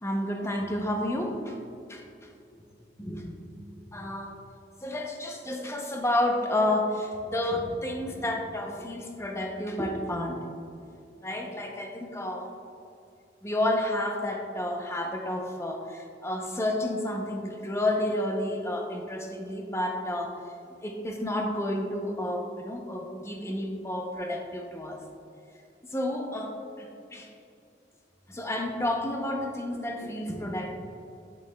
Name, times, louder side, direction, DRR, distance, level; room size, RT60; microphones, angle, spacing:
voice 1, 0.0-1.6 1.9-2.0 3.0-3.5 3.9-4.3 4.8-10.4 11.2-12.5 13.4-20.4 20.8-25.0 25.9-27.3 28.3-30.7, left 1 dB, 15° left, 2 dB, 0.6 m, -30 dB
8.4 x 6.3 x 2.3 m, 2.6 s
head